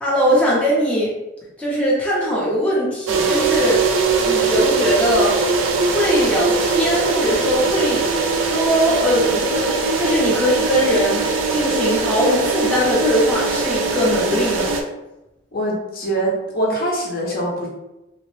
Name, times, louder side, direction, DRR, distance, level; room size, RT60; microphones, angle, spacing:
voice 1, 0.0-1.1 1.6-3.8 4.3-5.4 5.9-8.1 8.3-11.2 11.5-14.7, equal, 5° left, -7 dB, 0.6 m, -20 dB
sound 1, 3.1-14.8, right 4 dB, 85° right, 0.4 m, -20 dB
voice 2, 15.5-17.7, right 1 dB, 50° left, -3 dB, 0.7 m, -23 dB
2.9 x 2.0 x 3.0 m, 0.96 s
head